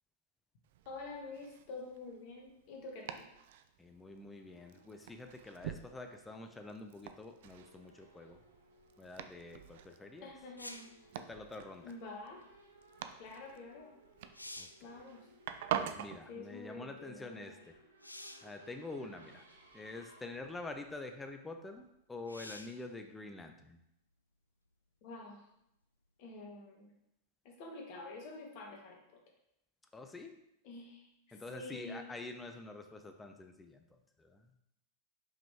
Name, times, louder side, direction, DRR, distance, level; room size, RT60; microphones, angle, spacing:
Domestic sounds home sounds, 0.6-16.2, right 10 dB, 55° right, 0.4 m, -46 dB
voice 1, 0.8-3.3 10.2-11.1 11.8-12.4 13.2-13.9 14.8-15.3 16.3-17.6 25.0-25.4 26.2-26.9 27.4-29.2 30.6-32.1, left 3 dB, 45° left, 0 dB, 1.5 m, -48 dB
voice 2, 3.8-8.4 9.0-10.3 11.2-12.0 14.6-14.7 15.8-17.7 18.4-19.4 19.7-23.8 29.9-30.3 31.3-34.5, left 2 dB, 10° left, 6 dB, 0.7 m, -47 dB
Race car auto racing / Accelerating revving vroom, 3.9-22.0, right 2 dB, 80° right, 0.9 m, -63 dB
sound 1, 10.6-11.0 13.7-13.8 14.2-14.9 18.0-18.6 19.6-19.7 22.3-22.8 26.4-26.5, left 1 dB, 85° left, 0.4 m, -49 dB
5.5 x 5.2 x 3.5 m, 0.82 s
figure-of-eight pair, 90°, 0 cm